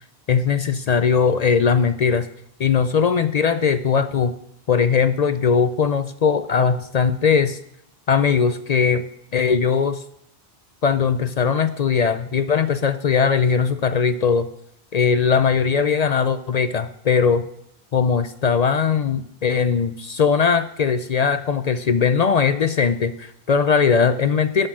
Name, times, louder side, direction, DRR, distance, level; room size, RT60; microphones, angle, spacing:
voice 1, 0.3-2.3 2.6-4.4 4.7-7.6 8.1-9.0 9.3-10.0 10.8-14.5 14.9-17.4 17.9-24.7, left 6 dB, 55° left, 11 dB, 0.5 m, -19 dB
11.0 x 6.6 x 6.1 m, 0.75 s
omnidirectional pair, 1.0 m